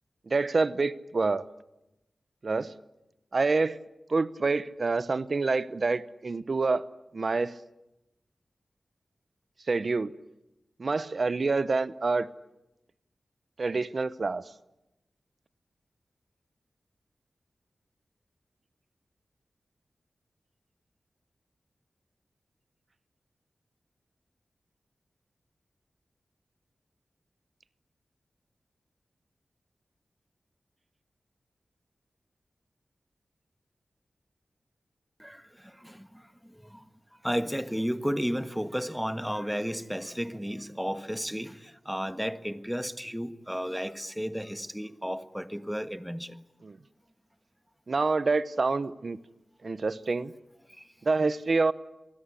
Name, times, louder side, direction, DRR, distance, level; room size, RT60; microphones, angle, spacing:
voice 1, 0.3-1.4 2.4-2.7 3.3-3.8 4.1-7.6 9.7-10.1 10.8-12.3 13.6-14.4 46.6-46.8 47.9-49.2 49.6-50.3 51.0-51.7, right 3 dB, 55° right, 0.9 m, -27 dB
voice 2, 35.2-36.2 36.7-36.8 37.2-46.3, equal, ahead, 1.4 m, -33 dB
27.5 x 20.0 x 9.8 m
wide cardioid pair, 85°, 0 cm